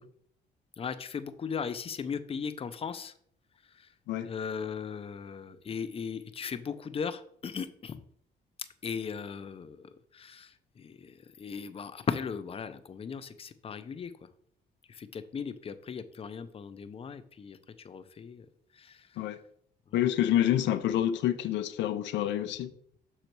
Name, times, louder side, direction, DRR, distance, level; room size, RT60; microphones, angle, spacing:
voice 1, 0.8-3.1 4.2-8.0 8.8-14.1 14.9-17.6 17.8-18.5 18.8-19.0, left 6 dB, 30° left, 0.6 m, -37 dB
voice 2, 19.9-22.7, left 11 dB, 80° left, 0.5 m, -27 dB
6.6 x 4.0 x 4.5 m
cardioid pair, 110°, 18 cm